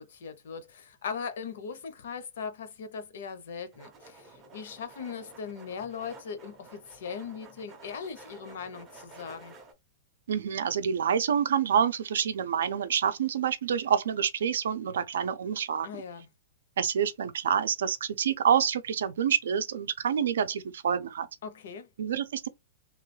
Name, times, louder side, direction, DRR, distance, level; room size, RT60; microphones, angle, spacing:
voice 1, 0.0-9.5 15.8-16.3 21.4-21.9, left 6 dB, 60° left, 0.6 m, -39 dB
sound 1, 3.7-9.7, right 2 dB, 15° right, 0.5 m, -51 dB
voice 2, 10.3-15.9 16.8-21.3 22.0-22.5, right 8 dB, 80° right, 0.5 m, -27 dB
3.0 x 2.3 x 3.2 m
supercardioid pair, 180°, 0 cm